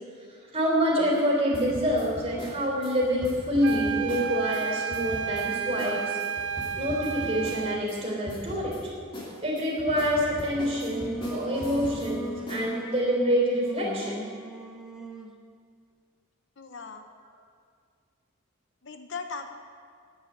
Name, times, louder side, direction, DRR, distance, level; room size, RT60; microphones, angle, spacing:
voice 1, 0.5-6.2 6.8-8.9 9.4-14.2, equal, 30° right, -4 dB, 3.6 m, -26 dB
sound 1, 1.5-4.6 4.9-5.5 5.8-5.9 6.2-8.0 8.3-8.8 9.1-12.1 12.5-12.7, equal, 25° left, 2.7 m, -40 dB
sound 2, 3.6-7.9, right 7 dB, 55° right, 0.6 m, -32 dB
Singing, 10.5-15.4, equal, 5° right, 0.9 m, -38 dB
voice 2, 16.6-17.1 18.8-19.5, left 5 dB, 55° left, 7 dB, 0.7 m, -38 dB
9.7 x 9.6 x 9.2 m, 2.1 s
head